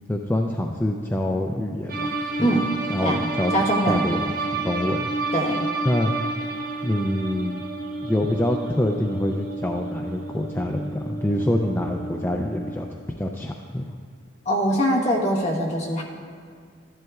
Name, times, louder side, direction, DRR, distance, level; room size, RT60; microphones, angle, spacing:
voice 1, 0.1-2.1 2.4-2.5 2.9-3.5 3.9-5.1 5.8-6.1 6.8-7.6 8.0-13.9, left 1 dB, 10° left, 1 dB, 0.3 m, -26 dB
sound 1, 1.9-12.9, right 3 dB, 45° right, 0.7 m, -30 dB
voice 2, 2.4-2.7 3.0-3.2 3.5-4.1 5.3-5.7 14.4-16.0, equal, 35° left, -2 dB, 1.2 m, -22 dB
14.0 x 10.5 x 2.4 m, 2.1 s
head